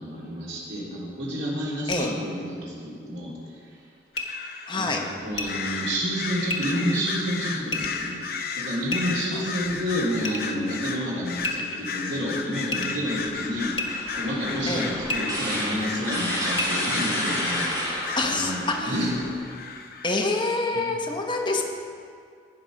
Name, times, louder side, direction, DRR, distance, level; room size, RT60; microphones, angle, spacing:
voice 1, 0.0-3.3 4.7-19.1 20.7-20.8, equal, 75° right, -6 dB, 3.5 m, -30 dB
sound 1, 1.9-2.0 4.1-4.2 5.3-5.5 6.5-6.8 7.7-8.1 8.9-9.4 10.2-10.6 11.4-11.9 12.7-13.1 13.7-13.9 15.1-15.2 16.5-16.7, left 2 dB, 90° left, 1.4 m, -30 dB
sound 2, 4.1-5.2 5.5-20.2, left 5 dB, 55° left, 0.8 m, -34 dB
voice 2, 4.7-5.0 9.3-9.5 14.7-14.9 18.2-18.9 20.0-21.6, left 2 dB, 25° left, 1 dB, 1.1 m, -26 dB
sound 3, 13.0-19.5, equal, 25° right, 3.0 m, -32 dB
18.0 x 6.2 x 5.3 m, 2.2 s
head